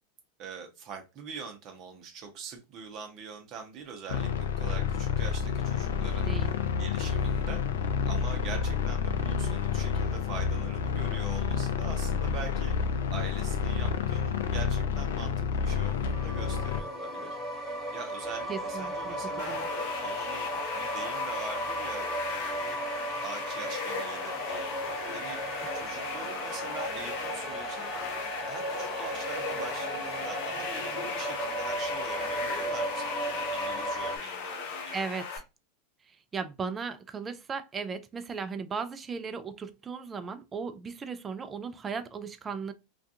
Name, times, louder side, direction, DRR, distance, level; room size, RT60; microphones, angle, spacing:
voice 1, 0.4-7.6 8.0-17.4 17.9-19.6 20.0-22.8 23.2-24.7 25.1-25.4 25.7-27.9 28.4-35.1, right 6 dB, 45° right, 0.7 m, -43 dB
sound 1, 4.1-16.8, left 6 dB, 80° left, 0.4 m, -29 dB
sound 2, 16.0-34.2, right 1 dB, 15° left, 1.1 m, -35 dB
voice 2, 18.5-19.7 34.9-35.4 36.1-42.7, right 5 dB, 25° right, 0.3 m, -37 dB
sound 3, 19.4-35.4, left 5 dB, 65° left, 0.7 m, -37 dB
2.4 x 2.3 x 2.7 m
hypercardioid pair, 110°, 0 cm